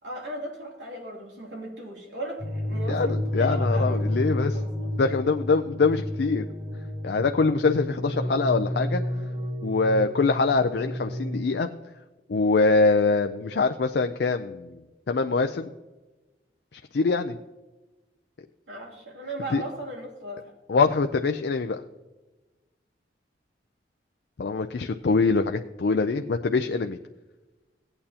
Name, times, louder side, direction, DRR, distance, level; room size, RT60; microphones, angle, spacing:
voice 1, 0.0-4.1 4.5-4.9 18.7-20.5, right 1 dB, 85° right, -1 dB, 2.8 m, -37 dB
sound 1, 2.4-11.5, left 1 dB, 30° right, 1.8 m, -30 dB
voice 2, 2.9-4.6 5.0-6.4 7.0-9.0 9.6-11.7 12.3-14.8 15.1-15.7 16.9-17.4 19.5-19.6 20.7-21.8 24.4-27.0, left 4 dB, 65° left, 6 dB, 0.4 m, -24 dB
16.5 x 8.8 x 2.8 m, 1.1 s
head